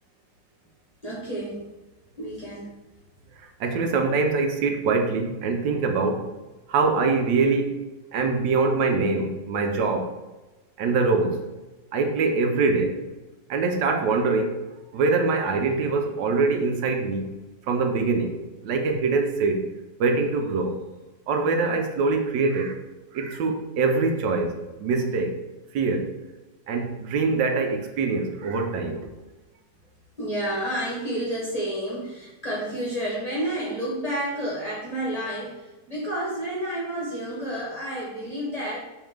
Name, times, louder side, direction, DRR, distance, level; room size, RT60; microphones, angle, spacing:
voice 1, 1.0-1.7 2.2-2.7 30.2-38.8, right 1 dB, 30° left, -6 dB, 0.9 m, -30 dB
voice 2, 3.6-6.3 6.7-7.7 8.1-10.1 10.8-11.4 11.9-13.0 13.5-14.5 14.9-17.3 17.7-18.3 18.6-19.6 20.0-20.8 21.3-22.8 23.1-25.3 25.7-26.1 26.7-29.1, right 4 dB, 85° right, 4 dB, 1.3 m, -23 dB
3.6 x 3.1 x 4.8 m, 1.1 s
omnidirectional pair, 1.9 m